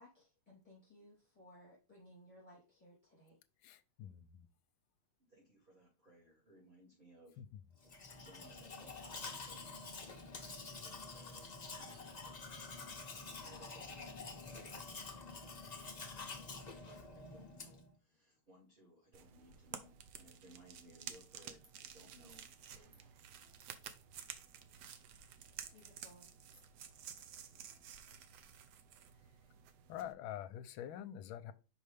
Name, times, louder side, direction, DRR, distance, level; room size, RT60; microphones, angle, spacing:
voice 1, 0.0-3.4 25.7-26.3, left 1 dB, 10° left, 3.2 m, -61 dB
voice 2, 3.6-4.5 7.4-7.5 29.9-31.5, left 11 dB, 80° left, 1.4 m, -46 dB
voice 3, 5.2-7.4 7.8-23.1, right 1 dB, 25° right, 2.6 m, -64 dB
Domestic sounds home sounds, 7.8-17.9, left 3 dB, 50° left, 0.5 m, -48 dB
sound 1, 19.1-30.1, right 8 dB, 65° right, 1.1 m, -52 dB
sound 2, 21.6-28.2, right 2 dB, 40° right, 1.8 m, -70 dB
5.5 x 5.1 x 3.4 m
omnidirectional pair, 2.4 m